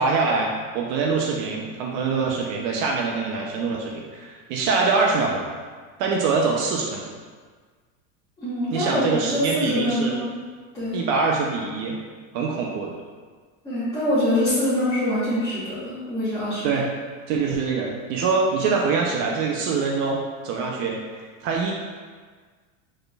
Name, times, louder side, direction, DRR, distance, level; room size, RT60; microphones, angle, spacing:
voice 1, 0.0-5.5 6.0-7.1 8.7-10.2 10.9-12.0 12.3-12.9 16.6-16.9 17.3-21.7, right 4 dB, 50° right, 0 dB, 0.6 m, -24 dB
voice 2, 8.4-10.4 10.7-11.0 13.6-16.8, left 1 dB, 10° left, -14 dB, 1.0 m, -24 dB
4.6 x 3.3 x 2.3 m, 1.5 s
supercardioid pair, 135°, 40 cm